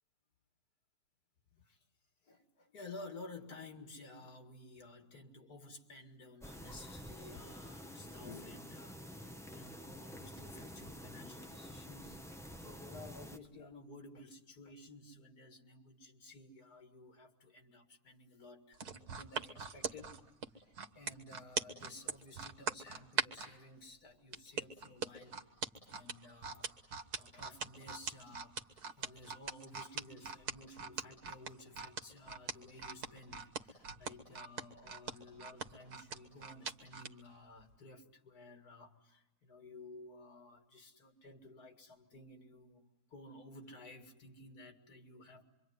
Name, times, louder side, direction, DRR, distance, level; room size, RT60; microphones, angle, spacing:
voice 1, 2.2-12.2 12.6-20.2 20.5-45.4, left 2 dB, 85° left, 5 dB, 2.6 m, -54 dB
sound 1, 6.4-13.4, equal, ahead, 0.9 m, -49 dB
sound 2, 18.7-23.5 24.3-37.1 37.6-37.7, right 5 dB, 85° right, 1.9 m, -40 dB
26.0 x 24.5 x 9.4 m, 0.91 s
omnidirectional pair, 1.6 m